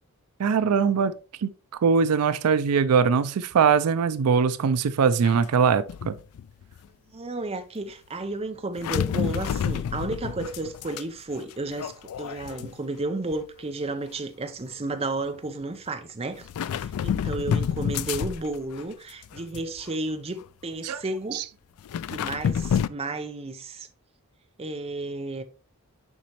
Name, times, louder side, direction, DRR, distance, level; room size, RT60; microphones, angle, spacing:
voice 1, 0.4-1.1 1.4-1.5 1.8-6.1 20.8-21.0 21.3-21.4, right 6 dB, 85° right, 0.4 m, -21 dB
sound 1, 5.2-5.5 5.9-6.8 8.8-11.0 11.3-13.0 13.3-13.6 14.7-14.8 16.4-18.8 19.2-19.9 20.4-20.5 21.8-22.9, left 8 dB, 75° left, 0.3 m, -29 dB
voice 2, 7.1-21.4 22.1-23.9 24.6-25.4, right 2 dB, 25° right, 0.6 m, -32 dB
7.3 x 5.1 x 2.9 m
head